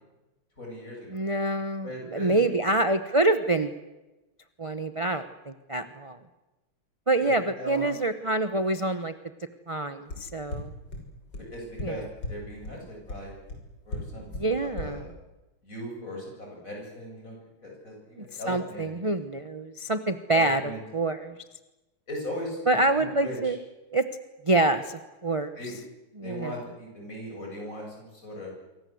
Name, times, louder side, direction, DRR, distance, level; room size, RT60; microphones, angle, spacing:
voice 1, 0.6-1.2 1.5-2.5 7.2-7.9 11.3-13.3 13.8-15.1 15.6-17.4 17.6-19.0 20.3-20.8 22.1-23.5 25.6-25.7 26.2-28.5, equal, 35° left, -1 dB, 8.5 m, -39 dB
voice 2, 1.1-3.7 4.6-6.2 7.1-9.1 9.7-10.7 11.8-12.1 14.1-15.0 18.2-21.4 22.7-23.6 23.9-24.0 24.4-25.6 26.2-26.5, right 2 dB, 30° right, 9 dB, 0.6 m, -26 dB
sound 1, 10.1-10.2 10.5-10.6 10.9-11.0 11.3-11.4 11.8-11.9 12.2-12.3 12.6-12.7 13.1-13.2 13.5-13.6 13.9-14.0 14.3-14.4 14.8-14.9, left 1 dB, 50° left, 6.7 m, -33 dB
27.0 x 24.0 x 7.9 m, 1.1 s
omnidirectional pair, 2.3 m